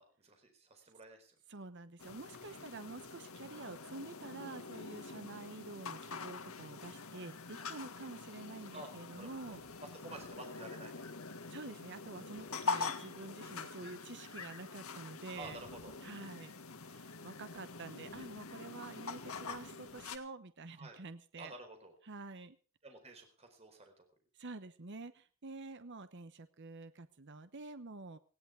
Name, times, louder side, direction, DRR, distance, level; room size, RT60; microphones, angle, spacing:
voice 1, 0.0-1.3 2.5-2.8 8.7-11.3 15.3-15.9 20.8-21.0 21.4-21.9 22.8-24.1, right 2 dB, 30° right, 5 dB, 4.5 m, -52 dB
voice 2, 1.5-9.6 11.5-15.6 16.0-16.5 16.8-21.5 22.0-22.6 24.4-28.2, right 3 dB, 55° right, 11 dB, 1.0 m, -48 dB
sound 1, 2.0-20.2, left 4 dB, 80° left, 1.8 m, -45 dB
19.0 x 17.0 x 3.5 m, 0.38 s
head